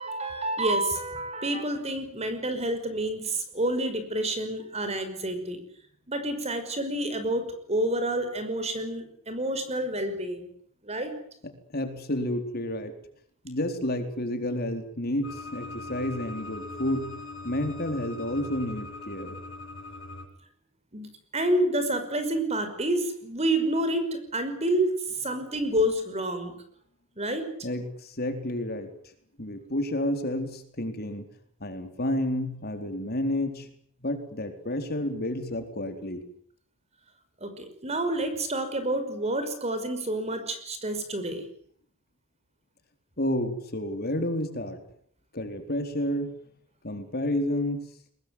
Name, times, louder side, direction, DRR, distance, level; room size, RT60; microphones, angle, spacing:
voice 1, 0.0-5.6 6.1-10.5 10.8-11.1 20.9-21.1 21.3-24.9 25.2-26.5 27.2-27.5 37.4-41.5, right 1 dB, 30° right, 9 dB, 5.5 m, -28 dB
voice 2, 11.7-12.9 13.4-17.1 17.4-19.4 27.6-28.9 29.4-31.3 31.6-33.7 34.0-36.2 43.2-44.8 45.3-46.3 46.8-47.8, left 1 dB, 45° left, 6 dB, 4.1 m, -30 dB
sound 1, 15.2-20.3, left 3 dB, 85° left, 6.0 m, -41 dB
22.5 x 22.0 x 9.6 m, 0.63 s
head